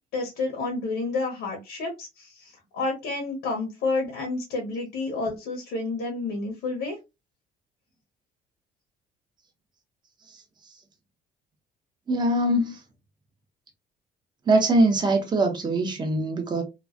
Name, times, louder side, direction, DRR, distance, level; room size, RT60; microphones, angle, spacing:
voice 1, 0.1-7.0, left 3 dB, 80° left, 1.0 m, -30 dB
voice 2, 12.1-12.8 14.5-16.6, right 2 dB, 25° right, 0.9 m, -22 dB
3.1 x 2.3 x 2.5 m
cardioid pair, 110°, 17 cm